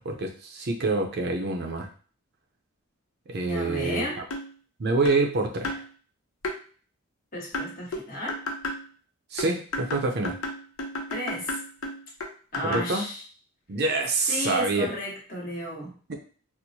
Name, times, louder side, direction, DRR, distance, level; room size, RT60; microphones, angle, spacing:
voice 1, 0.0-1.9 3.3-4.1 4.8-5.8 9.3-10.4 12.6-13.0 13.7-14.9 16.1-16.2, right 3 dB, 50° right, 3 dB, 0.6 m, -26 dB
voice 2, 3.4-4.2 7.3-8.4 11.1-11.6 12.5-13.2 14.3-15.9, left 1 dB, 40° left, -4 dB, 1.2 m, -33 dB
sound 1, 4.3-4.5 5.0-5.3 5.6-5.9 6.4-6.6 7.5-8.8 9.4-12.9, left 1 dB, 75° left, 0.6 m, -33 dB
4.4 x 2.1 x 2.7 m, 0.41 s
head